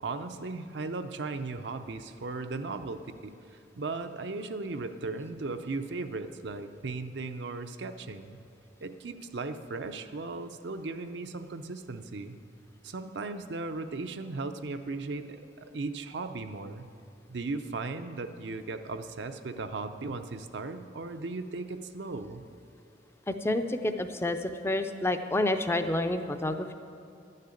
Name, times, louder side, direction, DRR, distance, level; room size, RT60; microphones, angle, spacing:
voice 1, 0.0-8.4 8.8-12.4 12.8-16.9 17.3-22.4, right 3 dB, 70° right, 8 dB, 0.6 m, -37 dB
voice 2, 23.3-26.7, left 1 dB, 15° left, 8 dB, 0.5 m, -29 dB
11.5 x 6.6 x 8.4 m, 2.5 s
head